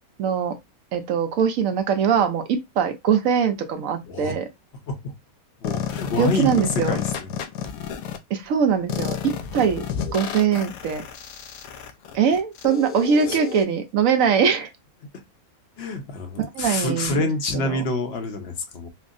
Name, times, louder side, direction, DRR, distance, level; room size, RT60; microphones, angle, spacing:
voice 1, 0.2-0.6 0.9-4.5 6.2-7.0 8.3-9.8 10.1-11.0 12.1-14.7 16.4-17.3 17.5-17.8, right 7 dB, 70° right, 1.0 m, -22 dB
sound 1, 5.6-8.2 8.9-13.6, left 8 dB, 80° left, 1.0 m, -30 dB
voice 2, 5.6-7.3 13.3-13.4 15.8-18.9, left 3 dB, 50° left, 0.9 m, -27 dB
4.4 x 2.0 x 2.4 m
omnidirectional pair, 1.5 m